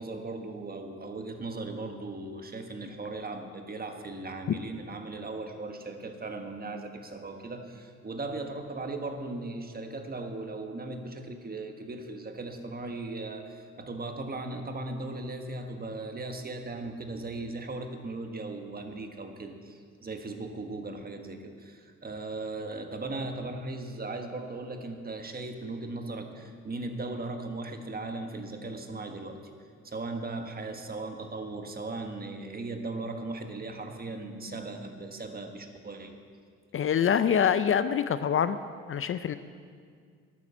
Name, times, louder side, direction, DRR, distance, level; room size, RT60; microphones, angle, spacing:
voice 1, 0.0-29.4 29.8-36.2, right 2 dB, 30° right, 5 dB, 1.4 m, -38 dB
voice 2, 36.7-38.6 38.9-39.4, left 8 dB, 45° left, 12 dB, 0.5 m, -25 dB
11.0 x 9.5 x 7.3 m, 2.1 s
cardioid pair, 90°, 30 cm